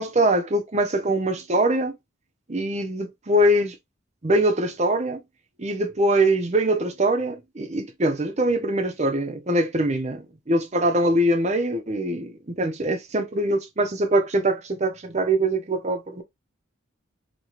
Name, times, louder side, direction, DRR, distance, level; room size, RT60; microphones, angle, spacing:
voice 1, 0.0-2.0 2.5-3.8 4.2-5.2 5.6-16.2, right 1 dB, 35° right, 0.7 m, -23 dB
3.0 x 2.9 x 3.0 m
head